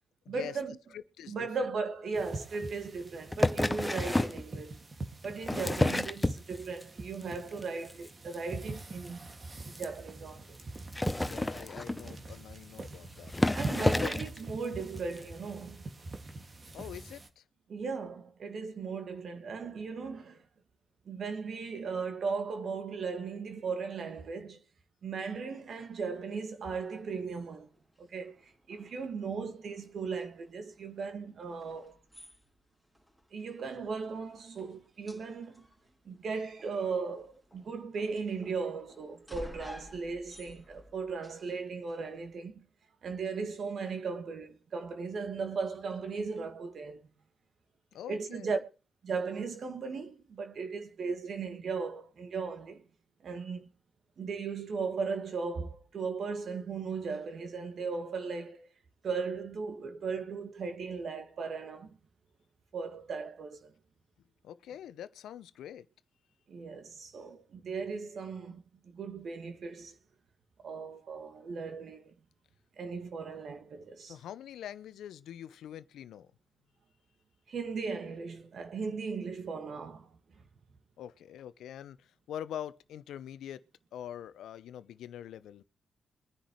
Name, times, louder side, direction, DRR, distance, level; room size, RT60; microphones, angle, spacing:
voice 1, 0.3-0.8 1.3-4.8 5.2-9.2 9.7-10.6 13.5-15.9 17.7-20.4 21.1-24.6 25.0-27.7 28.0-32.0 33.3-35.7 36.1-42.7 43.0-47.1 48.1-48.6 49.0-52.9 53.2-53.7 54.2-58.7 59.0-61.9 62.7-63.7 66.5-70.0 70.6-72.1 72.8-74.2 77.5-80.2, right 5 dB, 60° right, 1.9 m, -37 dB
voice 2, 0.9-1.5 11.2-13.6 13.9-14.1 16.7-17.4 47.9-48.6 64.4-65.9 74.1-76.3 81.0-83.7 83.9-85.6, left 10 dB, 75° left, 0.7 m, -44 dB
sound 1, 2.1-17.3, right 2 dB, 40° right, 2.1 m, -43 dB
sound 2, 3.3-4.4 5.2-6.8 7.2-7.6 7.9-8.1 8.3-8.4 8.6-8.7 9.1-9.2 9.8-9.9 10.8-12.2 12.9-13.0 13.3-14.4 15.2-15.3, left 1 dB, 15° left, 0.8 m, -29 dB
sound 3, 26.1-42.4, equal, 5° right, 3.5 m, -55 dB
23.5 x 10.0 x 3.1 m
hypercardioid pair, 40°, 0 cm